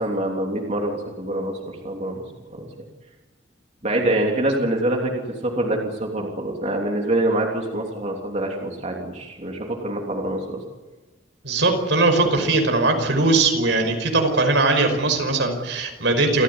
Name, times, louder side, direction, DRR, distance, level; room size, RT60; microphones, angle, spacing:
voice 1, 0.0-2.2 2.5-2.9 3.8-10.6, right 1 dB, 40° right, 0 dB, 3.2 m, -25 dB
voice 2, 11.4-16.4, right 3 dB, 75° right, 4 dB, 5.4 m, -20 dB
28.0 x 15.5 x 9.8 m, 1.2 s
head